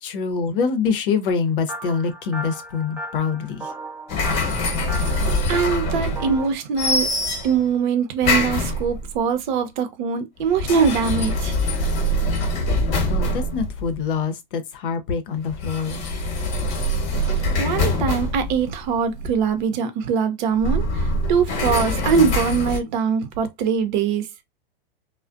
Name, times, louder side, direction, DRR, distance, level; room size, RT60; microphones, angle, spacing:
voice 1, 0.0-3.7 13.1-16.0, left 5 dB, 65° left, 0.8 m, -25 dB
sound 1, 1.7-6.5, right 1 dB, 5° right, 0.6 m, -36 dB
sound 2, 4.1-6.5 6.8-7.7 8.2-9.2 10.4-14.0 15.5-19.5 20.5-22.8, left 1 dB, 35° left, 1.1 m, -24 dB
voice 2, 5.1-7.1 7.4-11.5 17.2-24.3, right 6 dB, 55° right, 0.7 m, -22 dB
2.4 x 2.1 x 2.5 m
hypercardioid pair, 115°, 29 cm